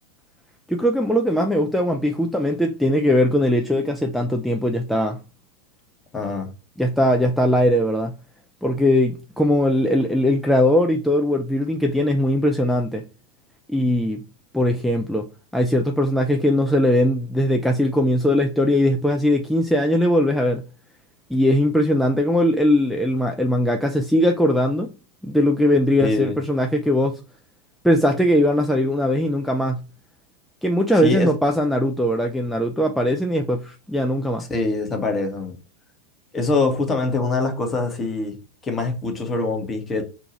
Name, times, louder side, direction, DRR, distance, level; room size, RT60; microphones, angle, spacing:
voice 1, 0.7-5.2 6.8-8.1 8.6-13.1 13.7-14.3 14.5-20.6 21.3-24.9 25.2-27.2 27.8-29.9 30.6-34.5, left 1 dB, ahead, 0.3 m, -20 dB
voice 2, 6.1-6.5 26.0-26.4 31.0-31.3 34.5-35.6 36.3-40.0, left 3 dB, 20° left, 0.8 m, -24 dB
2.6 x 2.3 x 2.9 m
figure-of-eight pair, 90°, 0 cm